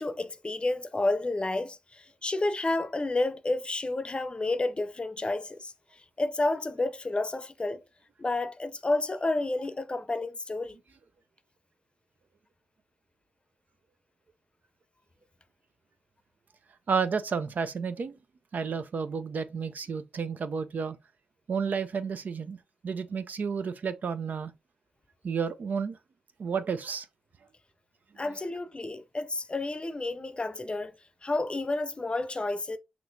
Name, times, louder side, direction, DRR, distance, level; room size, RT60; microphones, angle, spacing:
voice 1, 0.0-5.7 6.2-7.8 8.2-10.8 28.2-30.9 31.2-32.8, left 2 dB, 35° left, 0.6 m, -30 dB
voice 2, 16.9-18.2 18.5-21.0 21.5-22.6 22.8-24.5 25.2-26.0 26.4-27.1, right 6 dB, 60° right, 0.5 m, -31 dB
5.9 x 2.9 x 2.6 m
supercardioid pair, 40°, 3 cm